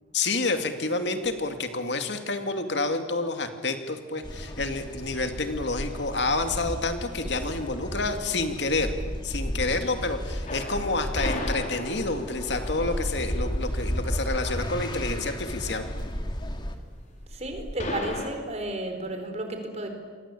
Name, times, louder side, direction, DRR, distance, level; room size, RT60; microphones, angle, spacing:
voice 1, 0.1-8.9 9.2-15.8, left 3 dB, 65° left, 7 dB, 2.5 m, -29 dB
sound 1, 4.2-16.8, equal, 25° left, 2.2 m, -33 dB
sound 2, 10.5-18.3, left 1 dB, 40° left, 4.0 m, -37 dB
voice 2, 17.3-19.9, right 1 dB, 35° right, 6 dB, 4.3 m, -33 dB
28.5 x 23.5 x 8.5 m, 1.5 s
head